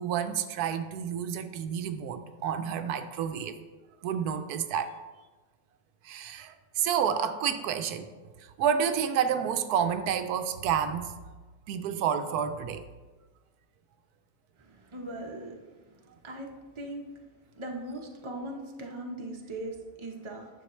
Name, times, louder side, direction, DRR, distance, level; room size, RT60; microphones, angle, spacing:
voice 1, 0.0-3.6 4.0-4.9 6.0-8.1 8.6-11.1 11.7-12.8, right 8 dB, 85° right, 9 dB, 1.1 m, -29 dB
voice 2, 14.6-16.0 16.2-16.5 16.7-17.1 17.6-20.5, right 1 dB, 20° right, 0 dB, 0.9 m, -39 dB
9.7 x 7.0 x 3.1 m, 1.3 s
omnidirectional pair, 1.6 m